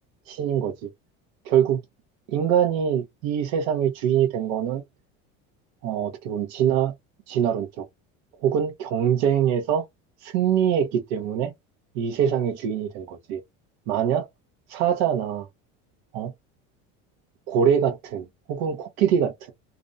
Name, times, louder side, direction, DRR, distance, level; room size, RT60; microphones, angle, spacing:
voice 1, 0.3-0.9 1.5-1.8 2.3-4.8 5.8-6.9 7.3-7.8 8.4-9.8 10.2-11.5 11.9-13.4 13.9-14.3 14.7-15.5 16.1-16.3 17.5-19.5, right 8 dB, 85° right, 0.7 m, -24 dB
2.5 x 2.1 x 2.5 m
cardioid pair, 145°, 30 cm